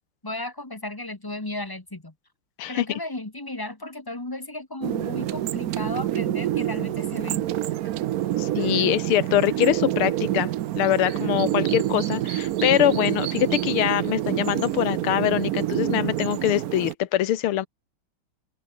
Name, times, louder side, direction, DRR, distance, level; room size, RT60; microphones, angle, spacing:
voice 1, 0.2-2.1 2.7-7.5, left 2 dB, 10° left, 1.4 m, -34 dB
sound 1, 4.8-16.9, right 13 dB, 80° right, 0.8 m, -27 dB
voice 2, 8.4-10.5 10.8-17.7, left 12 dB, 80° left, 1.9 m, -23 dB
open air
omnidirectional pair, 2.4 m